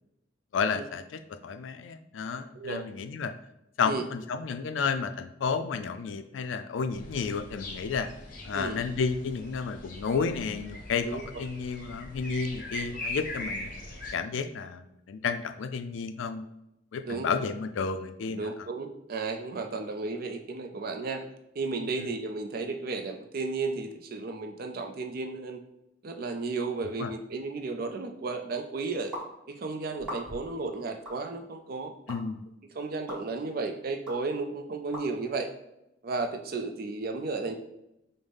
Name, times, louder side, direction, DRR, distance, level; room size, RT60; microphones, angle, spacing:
voice 1, 0.5-3.3 3.8-8.1 8.4-11.1 11.4-13.7 14.1-16.5 16.9-18.5 22.0-22.1 27.0-27.1 32.1-32.5, left 5 dB, 85° left, 9 dB, 0.4 m, -31 dB
voice 2, 2.5-2.9 3.8-4.0 8.5-8.8 11.0-11.2 17.0-17.3 18.3-21.2 21.6-25.6 26.0-29.1 29.5-31.9 32.7-35.5 36.0-37.5, right 3 dB, 50° right, 6 dB, 0.4 m, -33 dB
sound 1, 6.9-14.1, left 1 dB, 45° left, 0.7 m, -41 dB
sound 2, 29.1-29.3 30.0-30.5 31.1-31.2 32.1-32.2 33.1-33.2 34.1-34.2 34.9-35.1, equal, 5° right, 1.1 m, -38 dB
5.3 x 2.1 x 3.3 m, 0.86 s
head